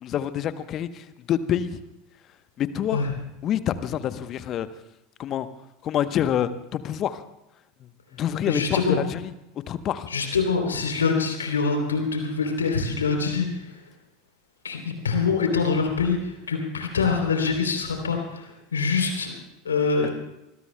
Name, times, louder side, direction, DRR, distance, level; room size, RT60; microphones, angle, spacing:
voice 1, 0.0-1.7 2.6-3.0 3.4-4.7 5.2-5.5 5.8-7.2 8.1-9.3 9.7-10.1, left 10 dB, 40° left, 12 dB, 0.9 m, -27 dB
voice 2, 8.5-9.0 10.1-13.7 14.6-19.3 19.6-20.1, left 4 dB, 80° left, 4 dB, 3.3 m, -25 dB
25.5 x 20.5 x 2.2 m, 0.90 s
figure-of-eight pair, 75°, 0 cm